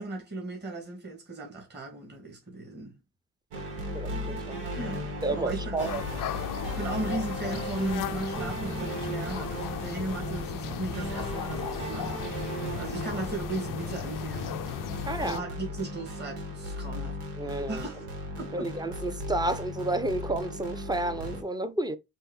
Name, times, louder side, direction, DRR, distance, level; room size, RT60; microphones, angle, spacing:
voice 1, 0.0-3.0 4.7-6.0 6.8-14.5 15.2-18.1 18.4-18.7, right 2 dB, 25° right, 1.9 m, -37 dB
sound 1, 3.5-21.4, right 1 dB, 85° right, 1.8 m, -36 dB
voice 2, 3.9-4.6 5.2-6.0 15.1-15.4 17.4-17.9 18.5-22.0, right 2 dB, 10° right, 0.7 m, -31 dB
sound 2, 5.8-15.4, left 14 dB, 55° left, 0.4 m, -36 dB
5.3 x 2.7 x 3.7 m
cardioid pair, 80°, 39 cm